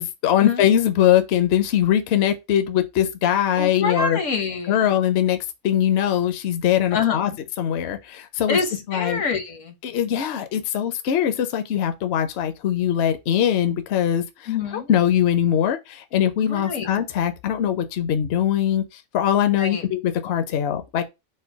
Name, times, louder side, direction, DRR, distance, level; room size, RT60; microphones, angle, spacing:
voice 1, 0.0-4.2 4.7-5.4 5.6-7.3 7.6-8.6 8.9-9.2 9.8-21.1, left 10 dB, 65° left, 0.8 m, -21 dB
voice 2, 3.6-4.7 6.9-7.2 8.5-8.7 8.9-9.7 14.5-14.9 16.4-16.9 19.6-19.8, left 5 dB, 80° left, 1.3 m, -25 dB
4.4 x 2.2 x 4.5 m
omnidirectional pair, 1.3 m